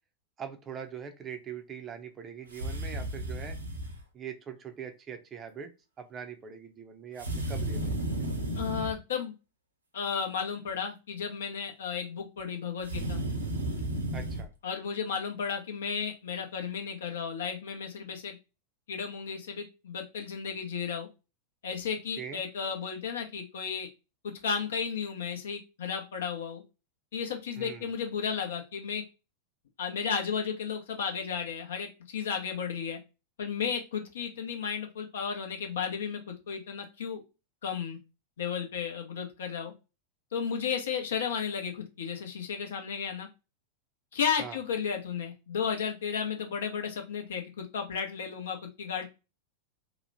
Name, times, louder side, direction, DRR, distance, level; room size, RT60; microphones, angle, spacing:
voice 1, 0.4-3.6 4.1-5.7 6.0-8.3 14.1-14.5 22.2-22.4 27.6-27.9 44.4-44.6, right 7 dB, 25° right, 6 dB, 0.5 m, -42 dB
sound 1, 2.5-4.0 7.2-9.0 12.8-14.5, right 1 dB, 80° right, 0.6 m, -33 dB
voice 2, 8.6-9.3 9.9-13.2 14.6-18.4 18.9-21.1 21.6-23.9 24.2-26.6 27.1-29.0 29.8-33.0 33.4-37.2 37.6-38.0 38.4-39.7 40.3-43.3 44.1-49.0, left 6 dB, 60° left, 4 dB, 0.6 m, -33 dB
2.9 x 2.1 x 2.5 m, 0.28 s
figure-of-eight pair, 90°, 0 cm